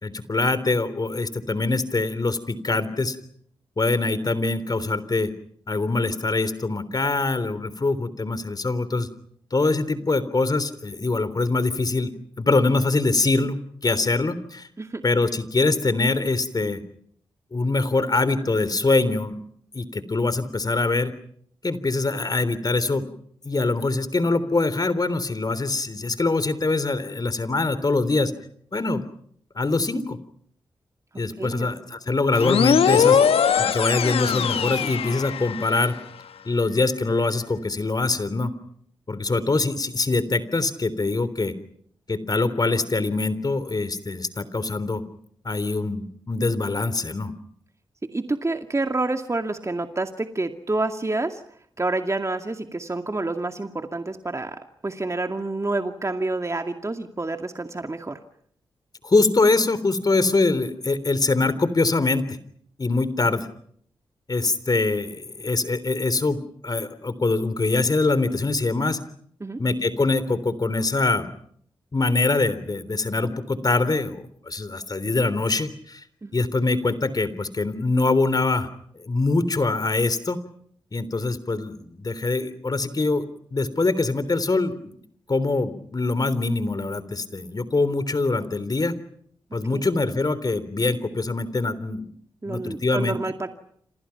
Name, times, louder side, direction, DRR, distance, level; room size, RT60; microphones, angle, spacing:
voice 1, 0.0-3.2 3.8-5.3 5.7-9.1 9.5-12.1 12.4-13.6 13.8-14.7 15.0-16.8 17.5-19.4 19.7-21.1 21.6-23.1 23.4-28.3 28.7-29.0 29.6-30.2 31.2-33.2 33.6-35.9 36.5-38.5 39.1-41.5 42.1-45.0 45.5-47.3 59.0-62.4 62.8-63.5 64.3-69.0 69.6-71.3 71.9-76.0 76.3-78.7 79.0-80.4 80.9-85.0 85.3-88.9 89.5-92.1 92.5-93.2, left 3 dB, 40° left, 14 dB, 3.5 m, -23 dB
voice 2, 31.4-31.7 48.0-51.4 51.8-58.2 69.4-69.6 76.2-76.3 89.7-89.8 92.4-93.5, right 2 dB, 30° right, 6 dB, 2.2 m, -28 dB
sound 1, 32.3-35.8, left 7 dB, 80° left, 1.3 m, -20 dB
30.0 x 27.0 x 5.9 m, 0.66 s
supercardioid pair, 45°, 10 cm